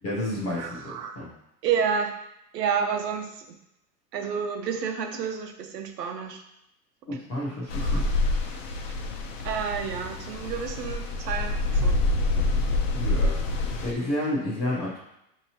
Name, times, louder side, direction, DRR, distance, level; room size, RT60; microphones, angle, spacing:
voice 1, 0.0-1.3 7.1-8.1 12.9-13.4 13.8-15.0, left 1 dB, 15° left, -7 dB, 0.4 m, -30 dB
voice 2, 0.6-1.2 1.6-2.1 2.5-3.4 4.1-6.4 7.1-7.2 7.8-8.0 9.4-12.0, right 7 dB, 90° right, 5 dB, 0.8 m, -30 dB
sound 1, 7.7-13.9, left 2 dB, 50° left, 0.8 m, -26 dB
6.3 x 2.8 x 2.8 m, 0.83 s
supercardioid pair, 150°, 47 cm